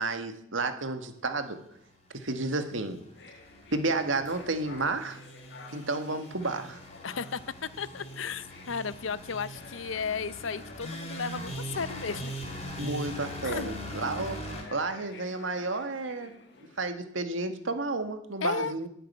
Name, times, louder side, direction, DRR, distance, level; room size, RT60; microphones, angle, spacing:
voice 1, 0.0-1.6 2.1-3.0 3.7-5.2 5.7-6.8 12.6-16.3 16.8-18.9, right 3 dB, 90° right, 7 dB, 1.8 m, -31 dB
sound 1, 2.3-14.6, equal, 35° left, 3.8 m, -41 dB
sound 2, 3.1-16.8, left 3 dB, 60° left, 2.0 m, -51 dB
voice 2, 7.0-12.4 12.8-13.1 13.4-13.8 18.4-18.7, left 5 dB, 90° left, 17 dB, 0.7 m, -34 dB
12.0 x 9.0 x 10.0 m, 0.73 s
head